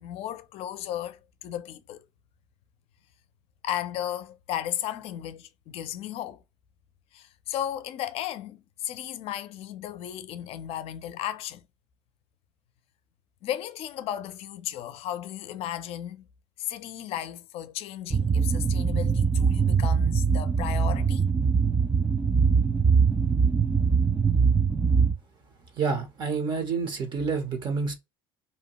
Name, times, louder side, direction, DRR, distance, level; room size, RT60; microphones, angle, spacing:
voice 1, 0.0-2.0 3.6-6.4 7.1-11.6 13.4-16.3 16.6-21.3, left 11 dB, 55° left, 0.5 m, -35 dB
sound 1, 18.1-25.1, right 5 dB, 15° right, 0.3 m, -22 dB
voice 2, 25.7-27.9, right 5 dB, 40° right, 0.7 m, -28 dB
2.7 x 2.1 x 2.9 m
supercardioid pair, 95°, 12 cm